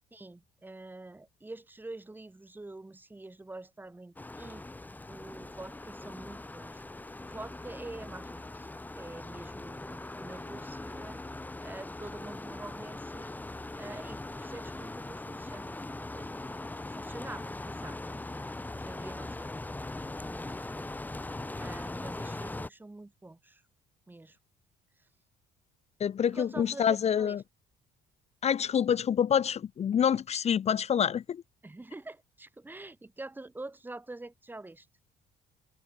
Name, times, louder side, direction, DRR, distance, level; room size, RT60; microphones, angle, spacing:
voice 1, 0.1-4.7 5.1-6.8 7.2-8.7 8.9-11.2 11.6-13.3 13.8-18.2 18.7-19.5 20.1-20.9 21.5-23.6 24.1-24.4 26.3-27.4 31.6-34.9, right 2 dB, 10° right, 2.0 m, -46 dB
sound 1, 4.2-22.7, left 2 dB, 10° left, 1.2 m, -41 dB
voice 2, 26.0-27.4 28.4-31.4, left 8 dB, 40° left, 0.8 m, -27 dB
cardioid pair, 110°, 17 cm